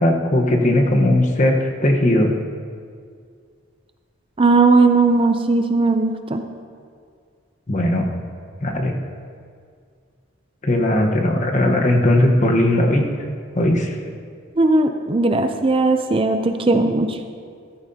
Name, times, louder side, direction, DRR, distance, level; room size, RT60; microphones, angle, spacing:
voice 1, 0.0-2.3 7.7-8.1 8.6-8.9 10.6-13.1 13.5-14.0, left 1 dB, 40° left, 2 dB, 1.1 m, -18 dB
voice 2, 4.4-6.4 14.6-17.2, right 3 dB, 25° right, 7 dB, 0.5 m, -17 dB
14.0 x 14.0 x 2.8 m, 2.1 s
head